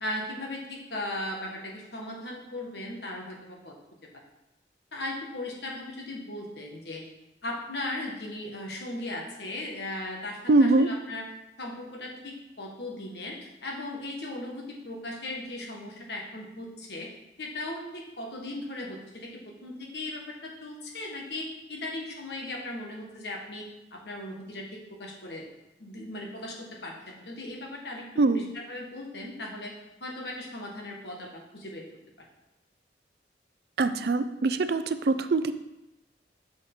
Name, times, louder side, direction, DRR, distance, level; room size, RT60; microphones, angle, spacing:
voice 1, 0.0-3.8 4.9-7.1 7.4-11.2 11.6-17.1 17.4-23.7 23.9-25.4 25.8-29.7 30.0-31.9, left 1 dB, 70° left, 0 dB, 1.6 m, -37 dB
voice 2, 10.5-10.9 28.2-28.4 33.8-35.6, right 3 dB, 60° right, 11 dB, 0.4 m, -23 dB
7.0 x 6.4 x 3.7 m, 0.93 s
head